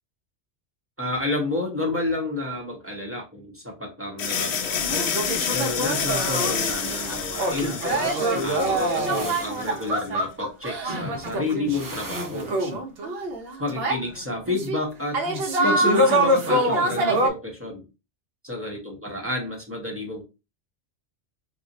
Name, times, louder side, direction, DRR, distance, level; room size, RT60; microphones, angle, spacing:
voice 1, 1.0-5.1 5.5-7.8 8.4-12.5 13.6-15.2 15.6-17.9 18.4-20.2, left 2 dB, 15° right, -1 dB, 0.8 m, -30 dB
sound 1, 4.2-9.9, left 7 dB, 70° left, 0.9 m, -29 dB
sound 2, 4.4-4.5 4.8-14.0 14.5-14.8 15.1-17.3, right 1 dB, 65° right, 0.9 m, -25 dB
sound 3, 6.3-7.2 9.0-9.8 11.7-12.7, right 3 dB, 30° right, 0.3 m, -40 dB
2.5 x 2.3 x 4.0 m, 0.27 s
omnidirectional pair, 1.2 m